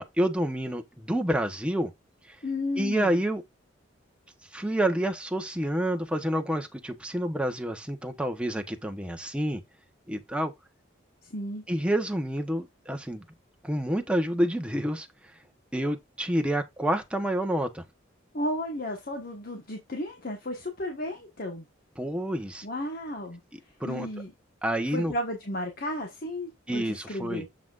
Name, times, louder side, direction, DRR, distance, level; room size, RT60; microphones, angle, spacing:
voice 1, 0.0-1.9 2.8-3.4 4.5-9.6 10.1-10.5 11.7-13.2 13.6-15.1 15.7-17.8 22.0-22.6 23.5-24.1 24.6-25.1 26.7-27.4, right 1 dB, 5° right, 1.0 m, -28 dB
voice 2, 2.4-3.2 11.2-11.6 18.3-21.7 22.6-23.4 23.8-24.3 24.9-27.5, left 1 dB, 50° left, 1.4 m, -33 dB
7.4 x 5.8 x 2.5 m
head